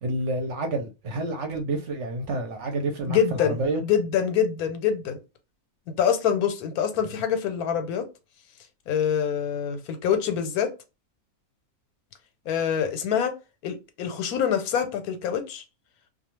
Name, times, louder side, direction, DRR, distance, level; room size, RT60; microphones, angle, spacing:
voice 1, 0.0-3.8, right 2 dB, 60° right, 0.9 m, -29 dB
voice 2, 3.1-3.6 3.8-5.2 6.0-8.1 8.9-10.7 12.5-13.4 13.6-15.6, left 8 dB, 85° left, 1.1 m, -25 dB
2.4 x 2.3 x 2.9 m
omnidirectional pair, 1.6 m